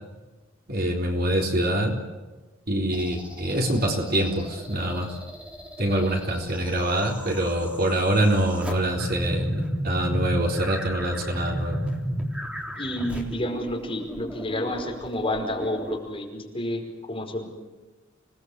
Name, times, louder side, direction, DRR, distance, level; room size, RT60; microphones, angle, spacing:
voice 1, 0.7-2.0 2.7-5.1 5.8-11.8, right 1 dB, 45° right, 2 dB, 3.7 m, -25 dB
sound 1, 2.9-16.0, equal, 5° right, 3.6 m, -34 dB
voice 2, 12.8-16.8 17.1-17.5, left 1 dB, 25° left, 1 dB, 5.2 m, -30 dB
26.5 x 19.5 x 8.2 m, 1.2 s
head